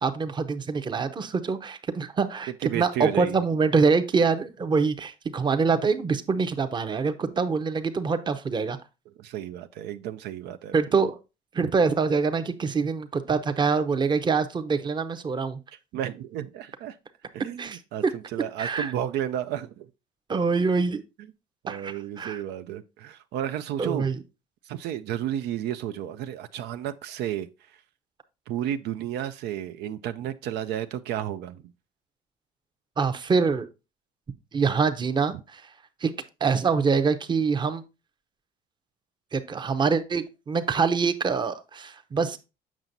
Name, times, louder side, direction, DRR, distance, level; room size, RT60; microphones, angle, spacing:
voice 1, 0.0-8.8 10.7-11.2 11.5-15.6 17.6-18.1 18.6-18.9 20.3-21.0 21.7-22.4 23.8-24.2 33.0-33.7 34.5-35.7 36.0-36.1 36.4-37.8 39.3-42.4, right 5 dB, 25° right, 0.7 m, -25 dB
voice 2, 2.6-3.4 7.2-7.3 9.2-10.8 11.6-11.7 15.9-17.0 17.3-19.9 21.6-24.1 24.6-27.8 28.5-31.6, right 11 dB, 80° right, 0.5 m, -32 dB
7.4 x 5.9 x 2.6 m
cardioid pair, 110°, 17 cm